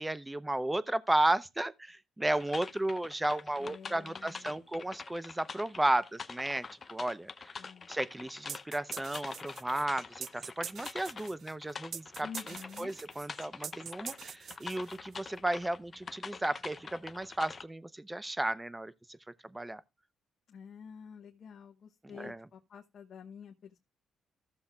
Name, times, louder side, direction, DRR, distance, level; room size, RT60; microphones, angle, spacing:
voice 1, 0.0-6.6 6.9-7.3 7.9-12.3 12.8-18.9 19.5-19.8 22.2-22.4, right 1 dB, 10° right, 0.6 m, -33 dB
sound 1, 2.3-17.6, left 5 dB, 35° left, 0.6 m, -45 dB
voice 2, 3.6-4.8 7.6-7.9 12.2-12.9 20.5-23.8, left 7 dB, 60° left, 1.0 m, -49 dB
sound 2, 8.5-15.2, right 8 dB, 60° right, 0.4 m, -44 dB
14.5 x 7.2 x 2.3 m
cardioid pair, 90°, 0 cm